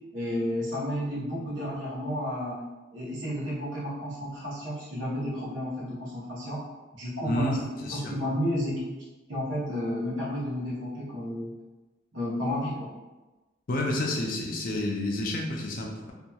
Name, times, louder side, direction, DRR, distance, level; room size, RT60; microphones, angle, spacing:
voice 1, 0.1-2.6 2.9-6.6 6.9-8.9 9.3-11.5 12.1-13.0, equal, 85° right, -8 dB, 0.8 m, -32 dB
voice 2, 7.2-8.1 13.7-16.1, left 1 dB, 50° left, 0 dB, 0.5 m, -30 dB
2.8 x 2.3 x 2.2 m, 1.1 s
head